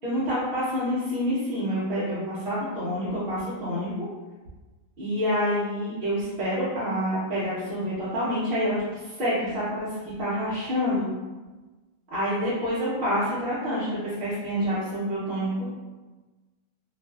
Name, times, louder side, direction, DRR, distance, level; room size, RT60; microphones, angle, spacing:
voice 1, 0.0-4.1 5.0-11.1 12.1-15.5, equal, 55° right, -11 dB, 0.7 m, -27 dB
2.5 x 2.3 x 2.2 m, 1.2 s
omnidirectional pair, 1.4 m